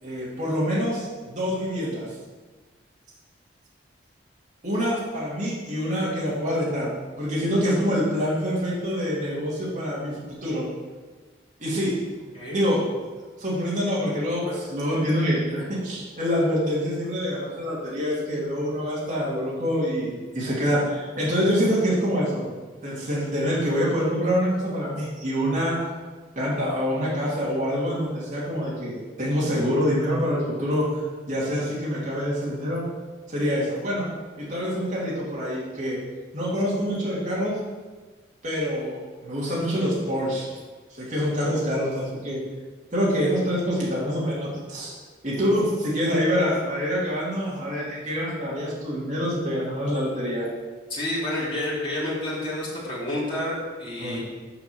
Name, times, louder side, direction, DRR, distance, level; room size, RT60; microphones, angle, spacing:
voice 1, 0.0-2.1 4.6-10.7 11.6-11.9 12.5-12.8 13.4-22.5 22.8-25.8 26.4-31.0 31.3-32.8 33.3-34.1 34.4-36.0 36.3-37.6 38.4-40.5 41.0-42.4 42.9-45.0 45.2-50.5 54.0-54.2, equal, 40° right, -7 dB, 2.2 m, -26 dB
voice 2, 50.9-54.2, left 1 dB, 30° left, -7 dB, 2.9 m, -29 dB
7.0 x 5.1 x 6.8 m, 1.3 s
head